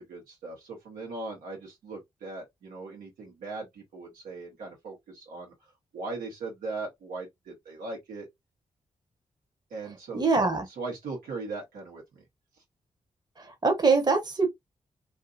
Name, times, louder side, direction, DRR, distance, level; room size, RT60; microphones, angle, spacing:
voice 1, 0.0-5.5 5.9-8.3 9.7-10.2 10.8-12.2, right 3 dB, 85° right, 1.1 m, -39 dB
voice 2, 10.1-10.6 13.4-14.5, right 4 dB, 30° right, 1.0 m, -23 dB
2.7 x 2.7 x 2.4 m
supercardioid pair, 40°, 14 cm